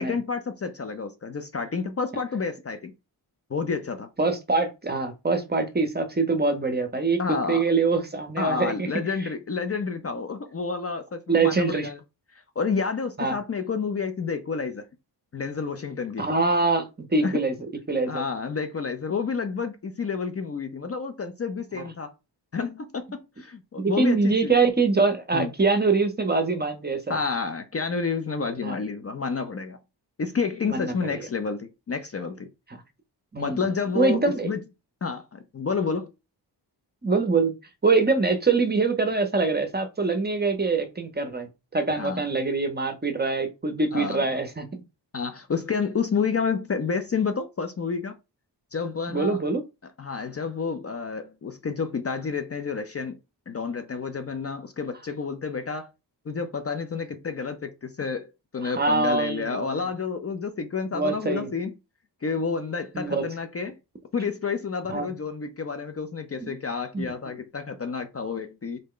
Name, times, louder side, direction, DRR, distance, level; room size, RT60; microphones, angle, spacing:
voice 1, 0.0-2.9 3.5-4.1 7.2-7.6 8.4-12.0 12.6-14.8 15.3-16.2 17.2-17.4 18.1-22.1 22.5-24.5 25.3-25.5 27.1-29.8 30.2-32.5 33.4-34.6 35.0-36.1 42.0-42.2 43.9-44.3 45.1-48.1 48.7-49.4 50.0-53.2 53.5-55.9 56.3-61.7 62.2-63.8 64.1-68.8, left 5 dB, 35° left, 0.4 m, -30 dB
voice 2, 4.2-7.2 7.5-8.9 9.2-9.3 11.3-11.9 13.2-13.4 16.2-17.5 17.9-18.2 21.8-21.9 23.8-27.2 28.6-28.7 30.7-31.2 33.3-33.6 33.9-34.5 37.0-37.5 37.8-44.8 49.1-49.6 58.6-59.9 60.9-61.5 62.9-63.2 64.9-65.1 66.4-66.6 66.9-67.1, right 4 dB, 25° right, 0.6 m, -24 dB
3.8 x 2.1 x 3.6 m
wide cardioid pair, 105°, 43 cm